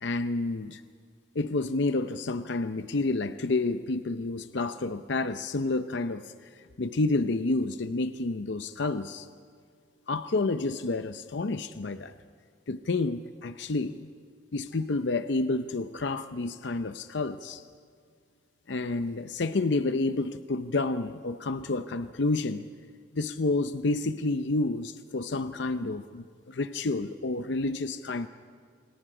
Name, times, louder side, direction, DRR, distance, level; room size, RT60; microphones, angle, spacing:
voice 1, 0.0-0.8 1.3-6.3 6.8-9.3 10.1-12.1 12.7-14.1 14.5-17.6 18.7-22.7 23.1-28.3, left 3 dB, 65° left, 10 dB, 0.6 m, -29 dB
29.0 x 26.0 x 5.0 m, 2.1 s
head